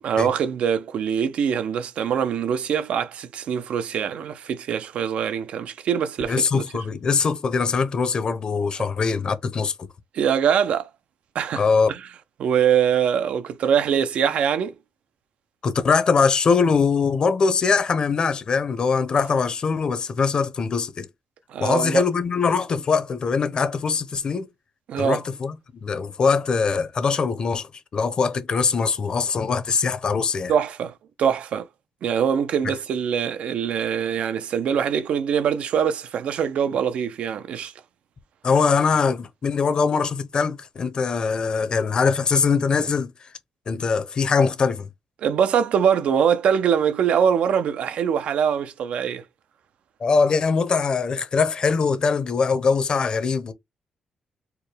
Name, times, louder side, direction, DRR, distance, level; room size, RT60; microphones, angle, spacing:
voice 1, 0.0-6.8 10.1-10.9 11.3-12.1 12.4-14.7 21.5-22.0 24.9-25.2 30.5-31.7 32.0-37.7 45.2-49.2, right 8 dB, 70° right, 0.4 m, -23 dB
voice 2, 6.3-9.7 11.6-11.9 15.6-21.1 21.6-24.5 25.0-25.5 25.8-30.5 38.4-43.1 43.7-44.9 50.0-53.5, left 5 dB, 40° left, 0.6 m, -22 dB
4.5 x 2.2 x 3.3 m
cardioid pair, 130°, 2 cm